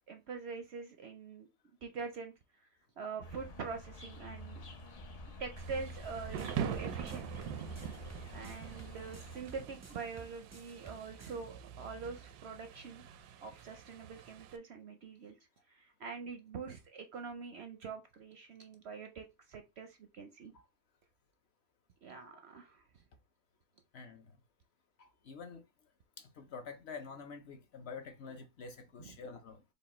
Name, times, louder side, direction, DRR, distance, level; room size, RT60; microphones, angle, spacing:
voice 1, 0.1-1.5 1.8-2.3 3.0-4.6 5.4-7.5 8.3-13.0 13.4-15.3 15.7-20.5 22.0-23.0 29.0-29.1, right 5 dB, 65° right, 0.6 m, -44 dB
sound 1, 3.2-9.4, right 1 dB, 85° left, 0.3 m, -47 dB
Thunder / Rain, 5.6-14.6, right 9 dB, 85° right, 1.1 m, -44 dB
sound 2, 6.0-11.4, right 3 dB, 25° right, 0.3 m, -53 dB
voice 2, 23.9-24.4 25.0-25.6 26.2-29.6, left 5 dB, 55° left, 0.8 m, -47 dB
5.1 x 2.3 x 4.2 m
omnidirectional pair, 1.6 m